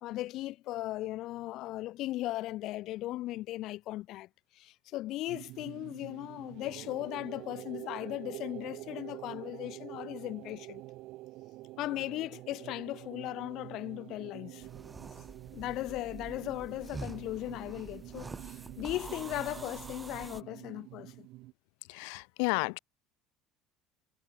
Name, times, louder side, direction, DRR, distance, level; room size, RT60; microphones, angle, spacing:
voice 1, 0.0-4.3 4.5-10.8 11.8-14.7 15.5-21.3, left 16 dB, 50° left, 0.8 m, -37 dB
sound 1, 5.3-21.5, right 18 dB, 55° right, 1.1 m, -47 dB
sound 2, 14.6-20.4, right 3 dB, 10° right, 0.8 m, -46 dB
voice 2, 21.9-22.8, left 40 dB or more, 80° left, 0.3 m, -32 dB
cardioid pair, 160°, 0 cm